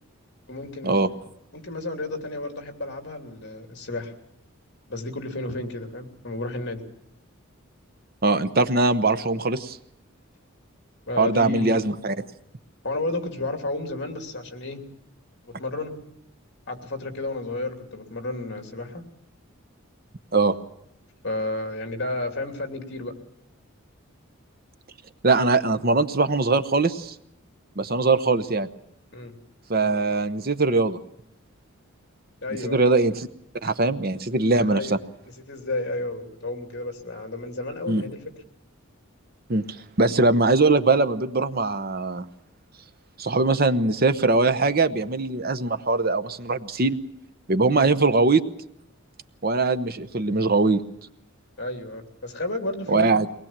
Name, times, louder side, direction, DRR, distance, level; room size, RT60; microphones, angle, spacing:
voice 1, 0.5-1.0 1.5-4.1 4.9-6.8 11.1-11.8 12.8-14.8 15.4-16.0 16.7-19.0 21.2-23.1 29.1-29.3 32.4-32.9 34.6-35.0 35.5-38.2 47.8-47.9 51.6-53.3, left 2 dB, 55° left, 5 dB, 3.0 m, -32 dB
voice 2, 8.2-9.8 11.2-12.2 20.3-20.6 25.2-27.1 27.8-28.7 29.7-31.0 32.6-33.3 33.6-35.0 37.9-38.0 39.5-39.6 40.0-42.2 43.2-47.0 47.5-48.4 49.4-50.8 52.9-53.3, right 3 dB, 45° right, 11 dB, 0.9 m, -21 dB
23.0 x 19.5 x 7.4 m, 0.76 s
head